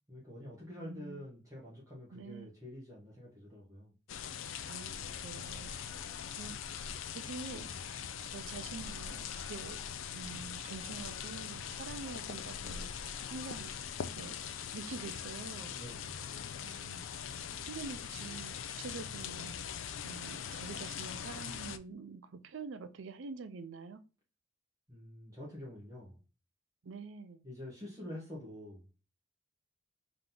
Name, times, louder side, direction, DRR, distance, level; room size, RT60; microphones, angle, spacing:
voice 1, 0.1-3.9 15.7-16.2 24.9-26.2 27.4-28.8, left 1 dB, 15° right, -6 dB, 1.2 m, -47 dB
voice 2, 0.8-1.2 2.1-2.5 4.7-5.7 6.4-6.6 7.2-7.7 8.3-9.8 10.1-12.9 13.3-13.7 14.1-14.4 14.7-15.8 16.6-17.1 17.6-19.6 20.0-24.0 26.8-27.4, right 4 dB, 75° right, 10 dB, 0.5 m, -46 dB
sound 1, 4.1-21.8, left 8 dB, 80° left, 0.4 m, -42 dB
3.6 x 2.8 x 3.8 m, 0.33 s
head